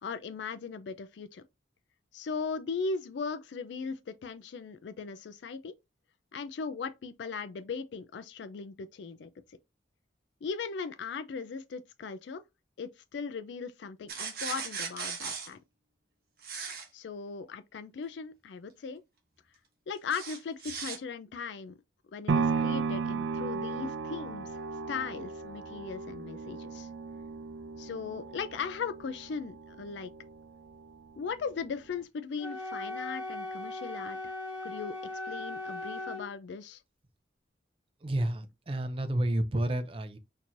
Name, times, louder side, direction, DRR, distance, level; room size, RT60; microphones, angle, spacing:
voice 1, 0.0-1.4 2.1-5.8 6.3-9.3 10.4-12.4 12.8-15.6 16.9-19.0 19.9-21.8 22.1-24.5 24.9-26.9 27.8-30.1 31.2-34.3 34.6-35.0 35.2-36.8, left 5 dB, 75° left, 0.4 m, -38 dB
sound 1, 14.1-15.5 16.4-16.8 20.1-21.0, right 5 dB, 55° right, 1.1 m, -37 dB
sound 2, 22.3-30.4 30.9-31.0, right 4 dB, 80° right, 0.5 m, -35 dB
Wind instrument woodwind instrument, 32.4-36.3, left 2 dB, 5° right, 1.0 m, -38 dB
voice 2, 38.0-40.2, right 1 dB, 30° right, 0.5 m, -30 dB
4.4 x 2.8 x 2.5 m
head